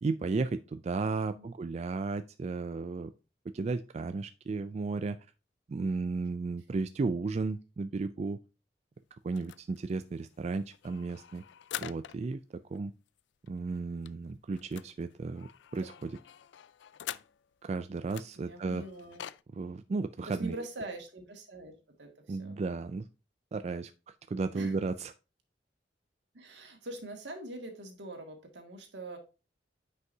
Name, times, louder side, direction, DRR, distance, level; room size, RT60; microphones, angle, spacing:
voice 1, 0.0-3.1 3.5-5.2 5.7-8.4 9.2-11.4 11.8-12.4 12.7-12.9 13.5-16.2 17.6-18.8 19.5-20.6 22.3-23.1 23.5-25.1, right 3 dB, 35° right, 11 dB, 0.3 m, -34 dB
voice 2, 1.0-1.5 18.4-19.2 20.2-21.7 22.0-22.6 24.5-24.8 26.3-29.2, right 2 dB, 80° right, 3 dB, 2.1 m, -43 dB
sound 1, 9.3-12.4 12.7-12.8 13.1-13.2 13.5-17.6 18.1-19.4, left 11 dB, 80° left, 0.4 m, -46 dB
9.4 x 5.4 x 2.7 m, 0.31 s
head